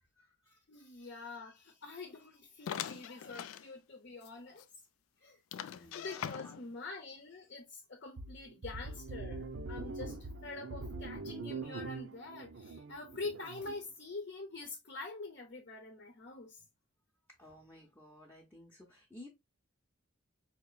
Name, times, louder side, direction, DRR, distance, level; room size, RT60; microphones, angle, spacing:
voice 1, 0.2-0.9 1.4-1.5 5.7-6.5 17.4-19.3, left 1 dB, 10° left, 0.7 m, -55 dB
voice 2, 0.7-4.6 5.2-5.4 5.9-10.2 10.4-16.6, left 3 dB, 55° left, 0.7 m, -45 dB
sound 1, 2.7-3.7 4.2-4.3 4.6-4.7 5.5-6.8, left 9 dB, 85° left, 0.3 m, -42 dB
sound 2, 8.2-13.8, right 3 dB, 65° right, 0.6 m, -43 dB
4.2 x 2.9 x 2.2 m
head